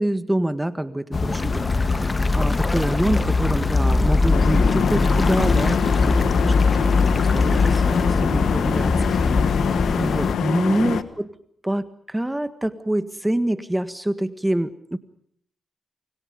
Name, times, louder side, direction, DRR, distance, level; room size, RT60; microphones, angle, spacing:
voice 1, 0.0-9.6 9.9-11.3 11.6-15.0, right 1 dB, 10° right, 11 dB, 1.7 m, -26 dB
sound 1, 1.1-10.3, left 3 dB, 40° left, 2.3 m, -21 dB
sound 2, 1.3-8.1, left 2 dB, 25° left, 2.2 m, -34 dB
sound 3, 4.3-11.0, left 8 dB, 85° left, 1.5 m, -25 dB
28.5 x 26.5 x 5.3 m, 0.64 s
cardioid pair, 80°, 0 cm